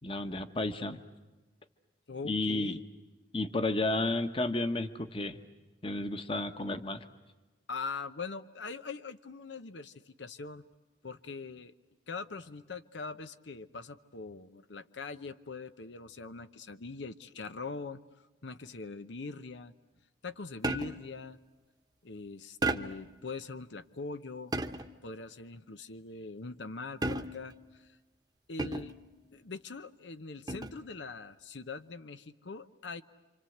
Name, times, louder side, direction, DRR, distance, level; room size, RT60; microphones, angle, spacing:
voice 1, 0.0-1.0 2.2-2.7 3.3-5.4 5.8-7.0, left 2 dB, 30° left, 9 dB, 1.2 m, -32 dB
voice 2, 2.1-2.8 7.7-10.6 11.0-11.7 12.1-18.0 18.4-19.7 20.2-21.4 22.0-24.5 25.0-28.0 28.5-29.0 29.3-33.0, left 4 dB, 90° left, 11 dB, 0.9 m, -42 dB
sound 1, 20.6-21.2 22.6-23.1 24.5-25.0 27.0-27.6 28.6-29.1 30.5-30.9, right 2 dB, 20° right, 0.9 m, -34 dB
28.5 x 26.0 x 7.9 m, 1.1 s
head